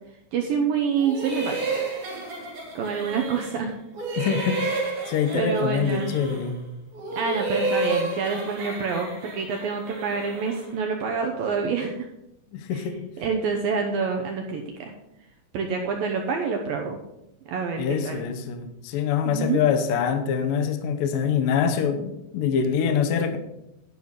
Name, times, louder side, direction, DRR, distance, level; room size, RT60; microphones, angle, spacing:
voice 1, 0.3-1.8 2.8-3.7 5.3-6.1 7.2-12.1 12.7-12.9 13.2-14.9 15.5-17.0 17.5-18.2 19.3-19.6, right 5 dB, 80° right, 2 dB, 2.1 m, -27 dB
sound 1, 1.0-3.6 3.9-6.5 6.9-10.7, right 2 dB, 45° right, 4.2 m, -31 dB
voice 2, 4.2-6.6 12.5-13.0 17.8-23.4, left 7 dB, 75° left, 6 dB, 2.0 m, -25 dB
11.5 x 5.5 x 6.4 m, 0.87 s
omnidirectional pair, 5.3 m